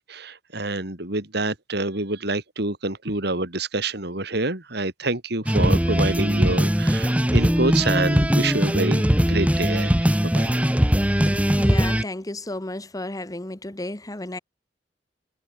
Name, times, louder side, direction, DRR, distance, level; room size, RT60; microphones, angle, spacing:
voice 1, 0.1-9.9 10.2-10.5, right 2 dB, 60° right, 3.8 m, -27 dB
sound 1, 5.5-12.0, equal, 10° right, 1.8 m, -20 dB
voice 2, 11.2-14.4, left 1 dB, 20° left, 1.2 m, -33 dB
head